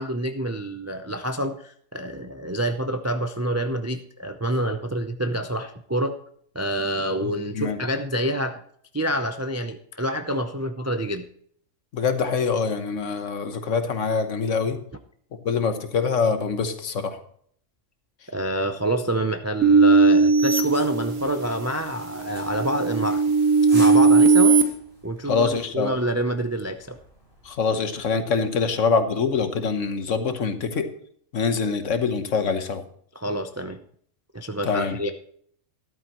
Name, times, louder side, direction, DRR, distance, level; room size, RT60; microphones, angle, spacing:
voice 1, 0.0-6.2 6.5-8.6 8.9-11.3 18.3-23.2 23.7-24.6 25.0-27.0 33.1-33.8 34.3-35.1, right 1 dB, 25° right, 7 dB, 0.3 m, -27 dB
voice 2, 7.2-7.8 11.9-14.8 15.4-17.2 25.2-25.9 27.4-30.9 31.3-32.8 34.7-35.0, left 5 dB, 70° left, 8 dB, 1.4 m, -24 dB
sound 1, 19.6-21.6 22.1-24.6, right 4 dB, 75° right, 1.4 m, -18 dB
sound 2, 20.7-27.7, equal, 50° right, 5.8 m, -46 dB
13.0 x 11.5 x 3.0 m, 0.62 s
omnidirectional pair, 1.3 m